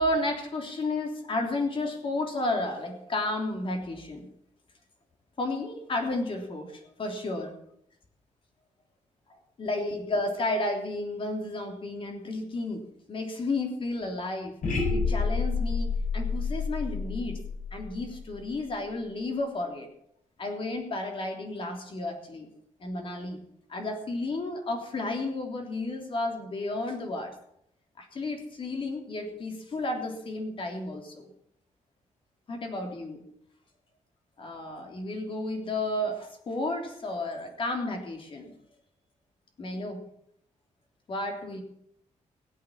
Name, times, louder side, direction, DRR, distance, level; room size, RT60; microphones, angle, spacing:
voice 1, 0.0-4.3 5.4-7.5 9.6-12.8 13.1-14.5 14.9-17.4 17.7-19.9 20.4-22.5 22.8-23.4 23.7-27.3 28.0-31.3 32.5-33.2 34.4-38.5 39.6-40.0 41.1-41.6, left 2 dB, 45° left, 3 dB, 3.3 m, -32 dB
sound 1, 14.6-18.7, left 4 dB, 85° left, 7.2 m, -29 dB
17.5 x 8.5 x 7.4 m, 0.71 s
wide cardioid pair, 150°, 13 cm